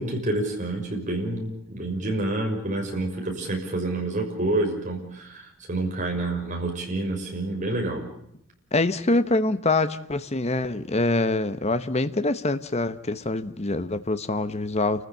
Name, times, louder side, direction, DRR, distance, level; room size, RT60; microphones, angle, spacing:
voice 1, 0.0-8.0, right 2 dB, 35° right, 1 dB, 6.1 m, -28 dB
voice 2, 8.7-15.1, left 2 dB, 30° left, 12 dB, 1.0 m, -25 dB
29.0 x 15.0 x 8.3 m, 0.75 s
head